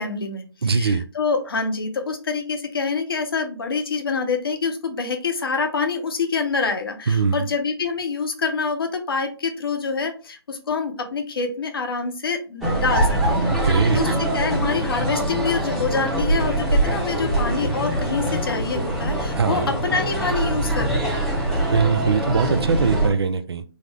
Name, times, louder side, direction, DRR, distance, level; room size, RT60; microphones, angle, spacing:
voice 1, 0.0-14.1 14.3-21.3, left 4 dB, 60° left, 5 dB, 0.8 m, -26 dB
voice 2, 0.6-1.0 7.1-7.5 13.5-14.0 19.4-19.7 21.7-23.6, right 5 dB, 70° right, 10 dB, 0.4 m, -21 dB
sound 1, 12.6-23.1, right 1 dB, ahead, 0.8 m, -23 dB
3.6 x 2.0 x 3.2 m, 0.35 s
figure-of-eight pair, 140°, 14 cm